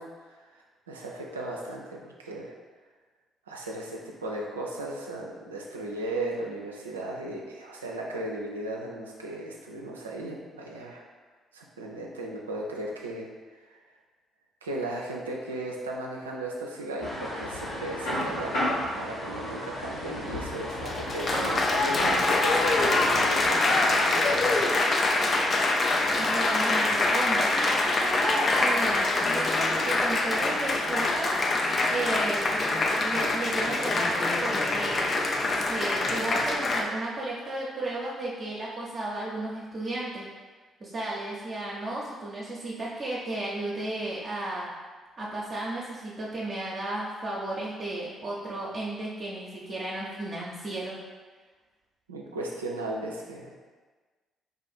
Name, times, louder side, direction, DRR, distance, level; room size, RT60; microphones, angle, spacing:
voice 1, 0.0-2.5 3.5-11.0 11.5-13.8 14.6-24.6 26.0-26.3 52.1-53.6, right 1 dB, 85° right, -2 dB, 0.4 m, -36 dB
sound 1, 17.0-23.5, left 1 dB, 80° left, 1.4 m, -33 dB
Applause, 20.6-36.8, left 2 dB, 40° left, 0.4 m, -25 dB
voice 2, 26.1-31.4 31.9-32.5 33.0-35.2 35.6-40.3 40.8-44.7 45.2-51.0, right 2 dB, 40° right, -6 dB, 0.6 m, -34 dB
2.6 x 2.5 x 4.0 m, 1.4 s
figure-of-eight pair, 45°, 0 cm